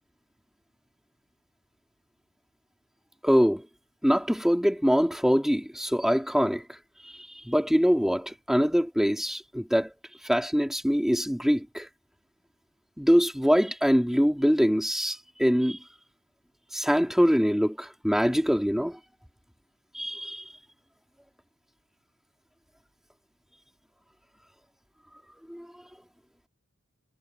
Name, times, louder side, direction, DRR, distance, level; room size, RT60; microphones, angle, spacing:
voice 1, 3.2-3.6 4.0-6.6 7.4-9.9 10.2-11.9 13.0-15.8 16.7-19.0 19.9-20.4 25.5-25.7, equal, ahead, 3.7 m, -24 dB
head